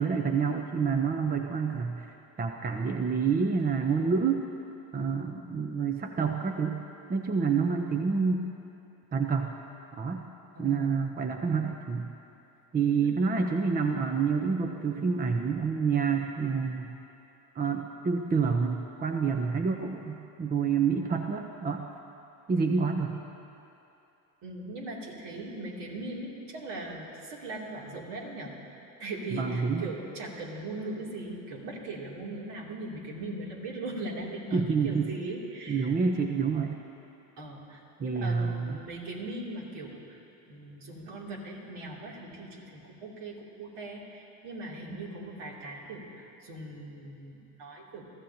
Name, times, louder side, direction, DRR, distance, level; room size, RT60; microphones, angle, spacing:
voice 1, 0.0-2.1 2.4-4.5 4.9-6.8 7.1-8.5 9.1-9.5 10.0-10.3 10.6-12.1 12.7-16.9 17.5-21.8 22.5-23.1 29.3-29.9 34.5-35.1 35.7-36.8 38.0-38.8, right 5 dB, 20° right, 4 dB, 0.7 m, -28 dB
voice 2, 10.5-11.1 13.0-13.1 24.4-28.5 29.0-35.9 37.4-40.2 40.5-48.0, right 2 dB, 60° right, -3 dB, 3.0 m, -39 dB
22.5 x 14.0 x 2.9 m, 2.9 s
hypercardioid pair, 80°, 46 cm